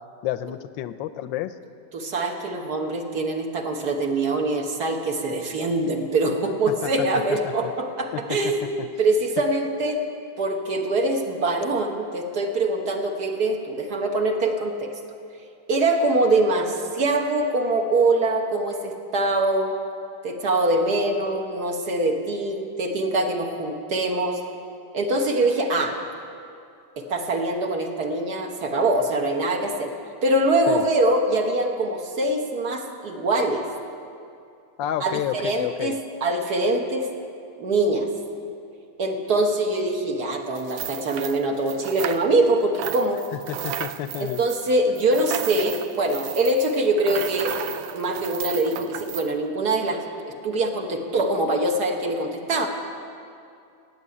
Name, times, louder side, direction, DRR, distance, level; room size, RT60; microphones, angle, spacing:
voice 1, 0.2-1.5 6.7-7.7 8.1-8.5 8.8-8.9 30.7-30.9 34.8-36.0 43.3-44.4, left 11 dB, 80° left, 12 dB, 1.3 m, -30 dB
voice 2, 1.9-10.0 10.4-15.0 15.7-19.7 20.2-24.4 24.9-26.0 27.0-29.9 30.2-33.6 35.0-37.1 37.6-38.1 39.0-43.2 44.2-47.6 47.9-52.7, right 2 dB, 55° right, 3 dB, 1.7 m, -23 dB
sound 1, 40.6-42.5 42.7-49.3, right 10 dB, 85° right, 1.4 m, -34 dB
16.0 x 8.2 x 9.7 m, 2.5 s
omnidirectional pair, 2.1 m